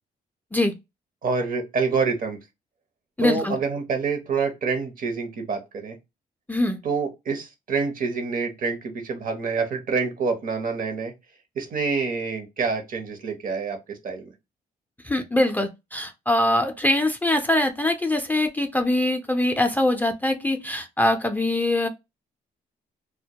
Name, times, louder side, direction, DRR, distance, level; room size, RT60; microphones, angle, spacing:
voice 1, 1.2-2.4 3.2-6.0 6.8-11.1 11.6-14.3, right 4 dB, 55° right, 0.7 m, -27 dB
voice 2, 3.2-3.6 6.5-6.8 15.0-21.9, left 1 dB, 10° left, 0.4 m, -23 dB
2.1 x 2.0 x 2.8 m
cardioid pair, 80°, 17 cm